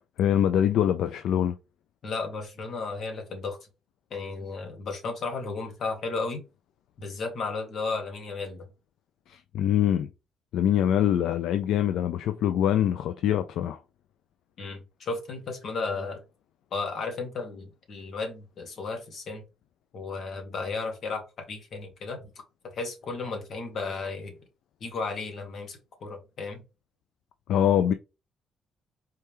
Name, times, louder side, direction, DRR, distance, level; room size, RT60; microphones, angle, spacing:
voice 1, 0.2-1.5 9.3-10.1 10.5-13.8 27.5-27.9, left 10 dB, 80° left, 0.4 m, -24 dB
voice 2, 2.0-3.6 4.1-6.4 7.0-8.6 14.6-16.2 16.7-19.4 19.9-21.2 21.5-22.3 22.6-24.3 24.8-26.6, left 4 dB, 60° left, 1.9 m, -34 dB
4.5 x 3.4 x 3.0 m
cardioid pair, 90°, 0 cm